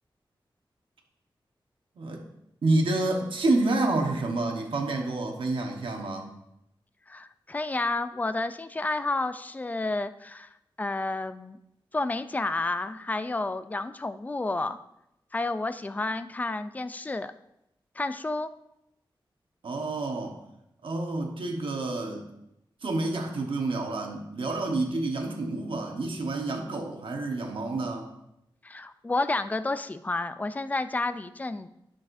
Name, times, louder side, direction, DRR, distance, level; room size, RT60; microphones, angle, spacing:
voice 1, 2.6-6.3 19.6-20.4 20.8-22.2 22.8-28.1, right 2 dB, 75° right, 2 dB, 1.1 m, -28 dB
voice 2, 7.1-10.5 10.8-11.6 11.9-14.8 15.3-17.3 18.0-18.5 28.6-31.7, left 2 dB, 20° left, 11 dB, 0.3 m, -30 dB
10.5 x 6.3 x 2.6 m, 0.82 s
wide cardioid pair, 125°, 9 cm